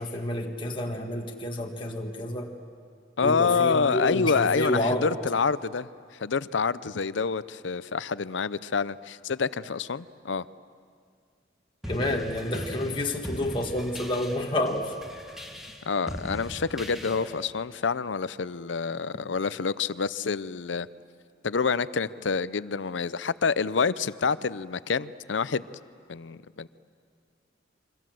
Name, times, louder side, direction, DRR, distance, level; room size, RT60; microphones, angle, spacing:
voice 1, 0.0-2.5 3.2-5.1 11.9-14.9, left 1 dB, 30° left, 1 dB, 1.7 m, -29 dB
voice 2, 3.2-5.9 6.2-10.4 15.9-20.9 21.4-25.7 26.1-26.7, left 5 dB, 90° left, 16 dB, 0.6 m, -27 dB
sound 1, 11.8-17.5, equal, ahead, 2.0 m, -39 dB
28.5 x 24.0 x 7.7 m, 2.2 s
head